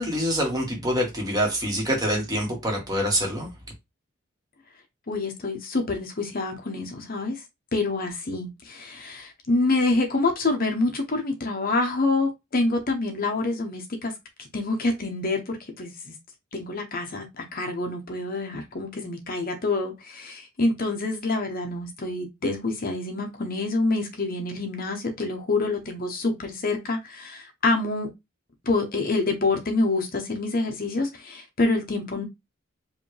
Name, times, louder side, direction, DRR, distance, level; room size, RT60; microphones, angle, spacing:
voice 1, 0.0-3.5, equal, 20° right, 1.5 m, -25 dB
voice 2, 5.1-7.4 7.7-14.1 14.4-16.1 16.5-28.1 28.6-32.3, left 2 dB, 45° left, 0.9 m, -27 dB
4.8 x 2.7 x 3.2 m
head